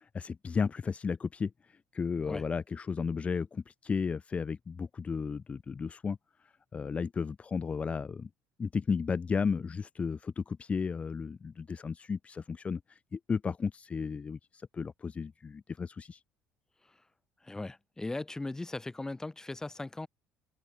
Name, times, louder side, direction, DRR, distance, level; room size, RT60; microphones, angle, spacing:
voice 1, 0.1-6.2 6.7-8.3 8.6-16.2, left 5 dB, 30° left, 1.1 m, -34 dB
voice 2, 17.4-20.1, left 2 dB, 15° left, 6.8 m, -38 dB
open air
supercardioid pair, 85°, 4 cm